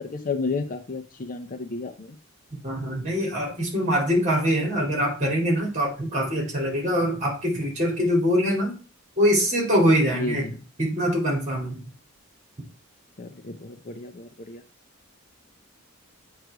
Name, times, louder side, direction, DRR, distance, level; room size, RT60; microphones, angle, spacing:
voice 1, 0.0-2.2 10.2-10.5 13.2-14.6, left 3 dB, 40° left, 7 dB, 0.6 m, -32 dB
voice 2, 2.6-8.7 9.2-10.5 10.8-11.8, equal, 35° right, 1 dB, 2.4 m, -23 dB
7.9 x 3.3 x 4.7 m, 0.35 s
head